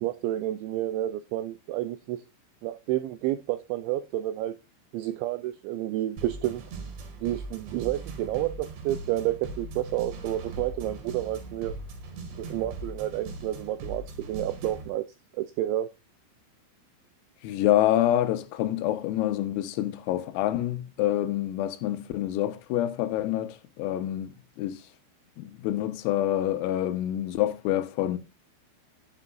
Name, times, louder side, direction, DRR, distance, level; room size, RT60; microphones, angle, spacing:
voice 1, 0.0-2.2 2.6-4.6 4.9-6.6 7.2-11.8 12.4-15.1 15.3-15.9, right 14 dB, 85° right, 2.6 m, -30 dB
Mean Machine, 6.2-14.9, right 3 dB, 60° right, 4.2 m, -40 dB
voice 2, 17.4-24.3 24.6-24.8 25.4-28.2, left 13 dB, 85° left, 3.6 m, -27 dB
12.0 x 9.9 x 2.4 m
omnidirectional pair, 5.9 m